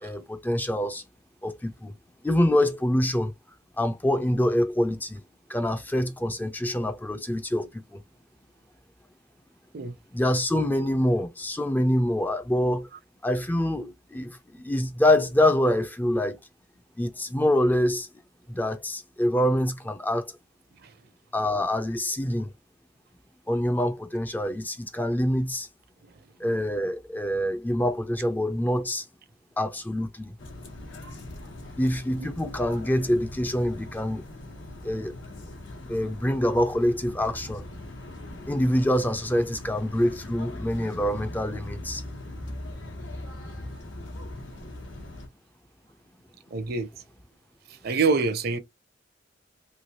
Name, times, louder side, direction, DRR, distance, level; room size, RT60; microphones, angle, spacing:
voice 1, 0.0-1.0 1.4-1.9 2.2-3.3 3.8-5.2 5.5-8.0 10.1-12.9 13.2-16.4 17.0-18.1 18.5-20.3 21.3-22.5 23.5-25.7 26.4-29.0 29.6-30.3 31.8-34.2 34.8-35.2 35.9-37.6 38.5-42.0, left 1 dB, 10° left, 0.3 m, -25 dB
sound 1, 30.4-45.3, left 1 dB, 85° left, 1.1 m, -40 dB
voice 2, 46.5-46.9 47.8-48.6, right 4 dB, 55° right, 0.6 m, -25 dB
3.1 x 2.7 x 2.7 m
head